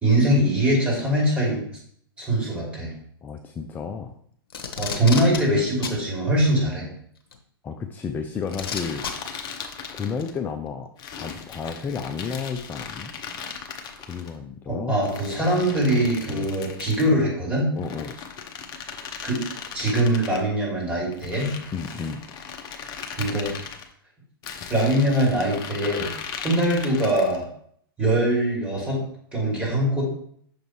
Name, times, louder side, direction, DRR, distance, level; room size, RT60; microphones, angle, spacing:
voice 1, 0.0-1.6 2.2-2.9 4.8-6.9 14.7-17.7 19.2-19.4 19.7-21.5 23.2-23.5 24.7-26.1 26.4-27.5 28.0-29.0 29.3-30.0, right 1 dB, 10° right, -5 dB, 2.6 m, -22 dB
voice 2, 3.2-4.1 7.6-9.0 9.9-10.9 11.2-13.1 14.1-14.9 16.3-16.5 17.7-18.1 21.7-22.2, left 6 dB, 15° left, 5 dB, 0.3 m, -32 dB
Packing tape duct tape, 4.5-5.4 5.8-6.0 7.3-7.4 8.5-9.1 10.2-10.3, left 6 dB, 65° left, 1.0 m, -30 dB
sound 1, 8.5-10.4 11.0-14.3 15.0-17.2 17.8-20.4 21.1-23.8 24.4-27.4, left 6 dB, 30° left, 0.8 m, -38 dB
6.3 x 5.1 x 3.1 m, 0.64 s
figure-of-eight pair, 110°, 13 cm